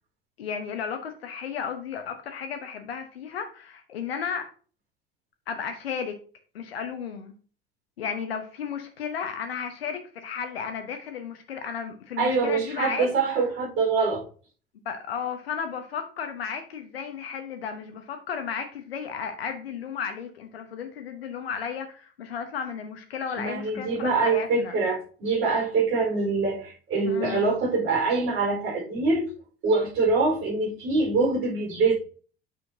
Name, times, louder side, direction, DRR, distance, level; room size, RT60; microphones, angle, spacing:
voice 1, 0.4-4.4 5.5-6.1 6.5-7.3 8.0-13.1 14.8-24.7 27.0-27.4, left 7 dB, 75° left, 0.9 m, -34 dB
voice 2, 12.2-14.2 23.4-29.3 29.6-31.9, right 3 dB, 40° right, 4.2 m, -24 dB
8.4 x 6.2 x 2.7 m
figure-of-eight pair, 70°, 31 cm